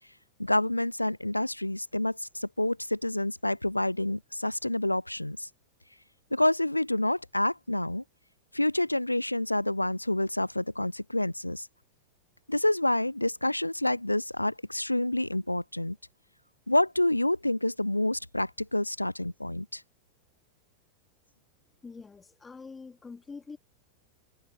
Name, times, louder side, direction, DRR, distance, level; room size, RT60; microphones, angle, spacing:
voice 1, 0.4-5.5 6.3-8.0 8.5-11.7 12.5-16.0 16.7-19.8, left 1 dB, 85° left, 0.5 m, -28 dB
voice 2, 21.8-23.6, left 4 dB, 15° left, 3.3 m, -45 dB
figure-of-eight pair, 90°, 0 cm